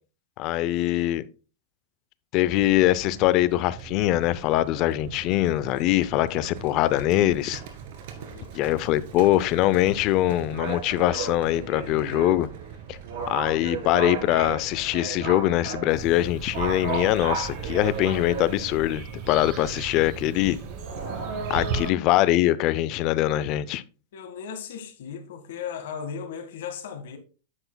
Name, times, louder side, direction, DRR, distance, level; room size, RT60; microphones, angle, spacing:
voice 1, 0.4-1.2 2.3-7.6 8.5-12.5 12.9-13.0 13.3-20.6 21.5-23.8, left 15 dB, 40° left, 0.5 m, -23 dB
Livestock farm animals working animals, 2.4-21.8, right 6 dB, 60° right, 2.1 m, -36 dB
voice 2, 8.2-8.5 21.6-21.9 24.1-27.2, left 7 dB, 70° left, 1.7 m, -37 dB
sound 1, 15.9-21.9, right 5 dB, 45° right, 2.2 m, -37 dB
9.8 x 7.9 x 2.3 m
supercardioid pair, 145°, 0 cm